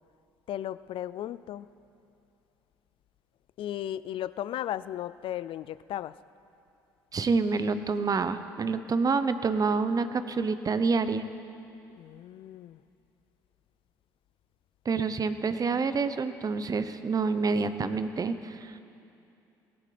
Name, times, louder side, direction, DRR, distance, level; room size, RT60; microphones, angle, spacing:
voice 1, 0.5-1.7 3.6-6.2 12.0-12.8, left 12 dB, 55° left, 17 dB, 0.4 m, -35 dB
voice 2, 7.1-11.3 14.8-18.8, right 4 dB, 35° right, 11 dB, 0.9 m, -27 dB
22.5 x 18.0 x 3.4 m, 2.7 s
hypercardioid pair, 60°, 11 cm